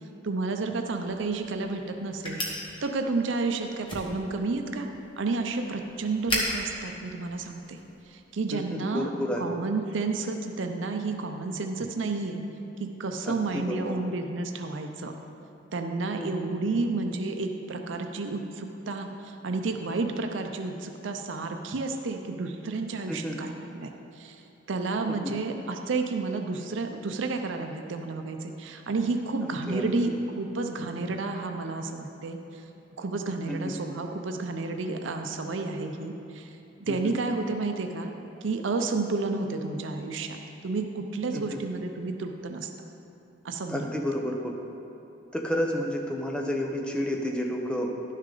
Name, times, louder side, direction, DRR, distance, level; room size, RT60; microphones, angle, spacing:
voice 1, 0.2-2.4 2.8-4.9 5.2-7.8 8.1-9.1 9.4-12.4 12.8-15.1 15.7-24.4 24.7-32.7 33.0-38.1 38.4-40.4 40.6-42.7 43.4-43.9, right 3 dB, 80° right, 5 dB, 0.6 m, -31 dB
sound 1, 0.9-8.0, equal, 25° left, 1.2 m, -37 dB
voice 2, 8.5-9.5 13.3-14.0 16.2-16.3 23.1-23.4 25.1-25.4 29.7-30.0 33.5-33.7 36.9-37.1 41.3-41.6 43.7-44.5 45.3-48.1, equal, 5° left, 1 dB, 0.6 m, -31 dB
11.5 x 6.5 x 3.8 m, 2.9 s
head